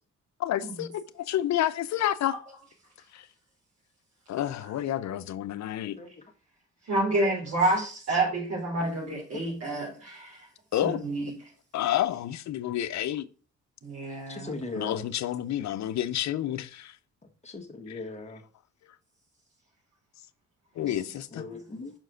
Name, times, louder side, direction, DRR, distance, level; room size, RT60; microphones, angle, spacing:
voice 1, 0.4-2.4 3.1-3.2 4.3-6.0 10.7-11.0 11.7-13.3 14.7-16.9 17.9-18.0 20.8-21.4, left 12 dB, 65° left, 0.7 m, -29 dB
voice 2, 6.9-10.4 10.8-11.3 13.8-14.6 20.8-20.9, right 2 dB, 55° right, 3.7 m, -29 dB
voice 3, 14.3-15.0 17.4-18.4 21.3-21.9, left 3 dB, 20° left, 1.7 m, -38 dB
6.0 x 4.6 x 6.4 m
cardioid pair, 90°, 30 cm